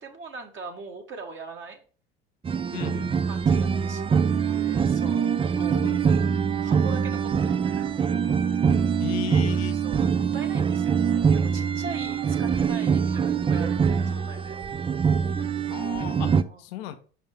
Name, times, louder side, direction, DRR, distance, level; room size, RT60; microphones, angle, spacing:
voice 1, 0.0-1.8 3.2-7.9 9.3-14.6 16.4-16.6, right 3 dB, 40° right, 1.4 m, -41 dB
sound 1, 2.4-16.4, right 6 dB, 20° right, 0.4 m, -24 dB
voice 2, 2.7-3.2 5.6-6.0 9.0-9.8 15.7-17.0, left 12 dB, 75° left, 0.9 m, -36 dB
5.6 x 5.4 x 3.4 m
hypercardioid pair, 70°, 31 cm